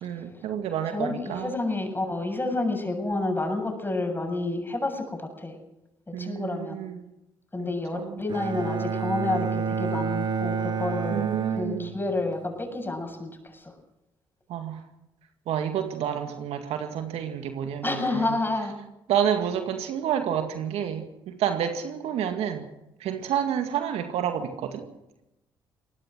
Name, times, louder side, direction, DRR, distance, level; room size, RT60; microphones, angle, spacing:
voice 1, 0.0-1.5 6.1-7.0 7.6-8.2 11.1-12.0 14.5-14.8 15.5-18.4 19.1-22.6 23.0-24.8, right 9 dB, 70° right, 6 dB, 2.1 m, -29 dB
voice 2, 0.9-5.6 6.1-6.8 7.5-13.7 17.8-18.8, left 2 dB, 20° left, 4 dB, 7.6 m, -29 dB
Bowed string instrument, 8.3-12.4, right 6 dB, 45° right, 1.7 m, -29 dB
23.0 x 18.0 x 6.3 m, 0.90 s
hypercardioid pair, 50°, 11 cm